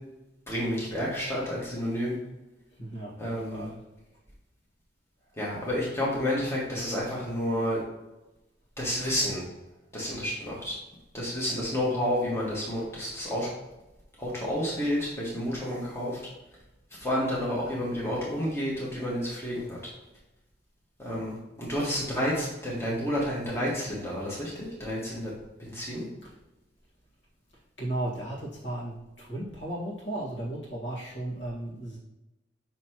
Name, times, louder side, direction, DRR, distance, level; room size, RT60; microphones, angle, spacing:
voice 1, 0.5-2.1 3.2-3.7 5.4-7.8 8.8-9.4 9.9-10.8 11.1-13.5 14.2-16.2 16.9-19.8 21.0-25.3 25.6-26.1, equal, 15° left, -6 dB, 1.6 m, -30 dB
voice 2, 2.8-3.8 26.2-26.3 27.8-32.0, right 1 dB, 75° left, -6 dB, 1.8 m, -35 dB
5.9 x 5.7 x 3.0 m, 0.99 s
head